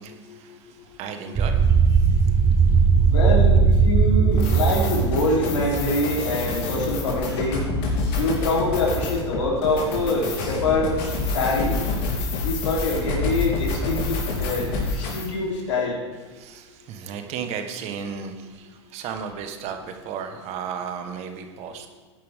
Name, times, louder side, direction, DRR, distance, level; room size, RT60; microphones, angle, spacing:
voice 1, 0.0-2.4 12.2-12.5 14.9-15.4 16.3-21.9, right 7 dB, 45° right, 6 dB, 1.5 m, -35 dB
sound 1, 1.4-6.0, right 5 dB, 20° right, 0.6 m, -18 dB
voice 2, 3.0-7.6 8.2-11.0 11.3-11.8 12.4-16.0, left 2 dB, 80° left, -3 dB, 3.6 m, -25 dB
sound 2, 4.3-15.3, left 3 dB, 55° left, 3.4 m, -28 dB
14.0 x 10.0 x 3.7 m, 1.4 s
hypercardioid pair, 105°, 15 cm